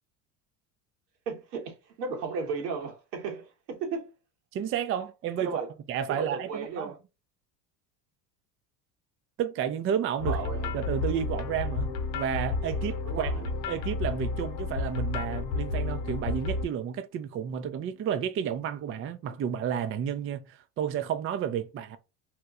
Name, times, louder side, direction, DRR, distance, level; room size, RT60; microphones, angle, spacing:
voice 1, 1.3-4.1 5.4-5.7 6.1-7.0 10.3-10.7 13.0-13.5, right 4 dB, 90° right, 1.2 m, -35 dB
voice 2, 4.5-5.6 5.9-6.9 9.4-10.4 10.7-22.0, right 8 dB, 30° right, 0.4 m, -31 dB
sound 1, 10.2-16.6, left 3 dB, 75° left, 0.8 m, -31 dB
3.0 x 2.2 x 3.5 m
supercardioid pair, 85°, 47 cm